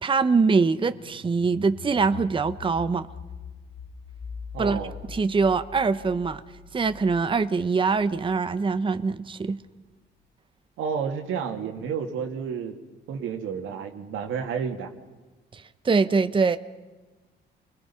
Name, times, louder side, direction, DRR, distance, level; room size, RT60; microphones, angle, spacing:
voice 1, 0.0-3.1 4.6-4.8 5.1-6.4 6.7-9.6 15.5-16.6, right 4 dB, 25° right, 0.8 m, -23 dB
sound 1, 0.7-9.4, left 6 dB, 85° left, 2.2 m, -43 dB
voice 2, 4.5-4.9 10.8-12.8 13.1-14.9, right 6 dB, 90° right, 2.4 m, -31 dB
28.5 x 21.5 x 5.7 m
cardioid pair, 90°, 20 cm